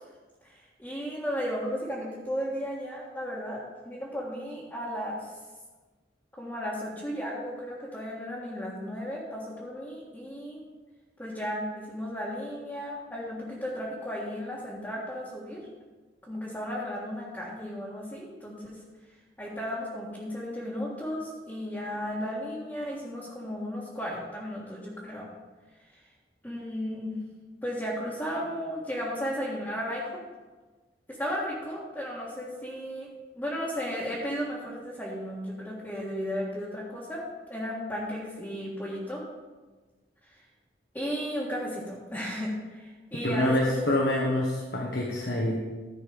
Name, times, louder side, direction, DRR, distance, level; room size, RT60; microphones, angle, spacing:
voice 1, 0.4-5.3 6.3-10.6 11.2-15.7 16.2-18.8 19.4-25.3 25.9-26.0 26.4-27.2 27.6-30.2 31.1-39.2 40.2-40.4 40.9-43.8, equal, 10° left, -7 dB, 1.7 m, -35 dB
voice 2, 43.2-45.6, left 1 dB, 65° left, -2 dB, 1.4 m, -26 dB
14.0 x 5.5 x 5.1 m, 1.3 s
head